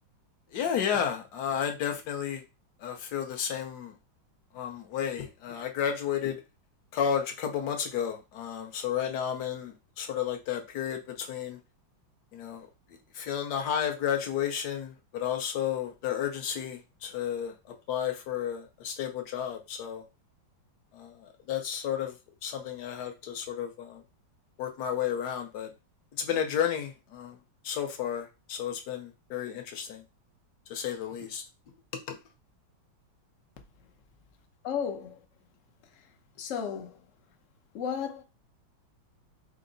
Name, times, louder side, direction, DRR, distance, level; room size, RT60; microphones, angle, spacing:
voice 1, 0.5-2.4 2.8-3.9 4.6-6.4 6.9-11.6 12.3-12.7 13.2-17.5 17.9-20.0 21.0-21.1 21.5-22.1 22.4-24.0 24.6-25.7 26.2-27.3 27.6-28.2 28.5-30.0 30.7-31.4, left 9 dB, 65° left, 1.1 m, -32 dB
voice 2, 34.6-35.2 36.4-37.0 37.7-38.2, left 7 dB, 90° left, 0.6 m, -33 dB
4.6 x 2.0 x 3.8 m
omnidirectional pair, 2.2 m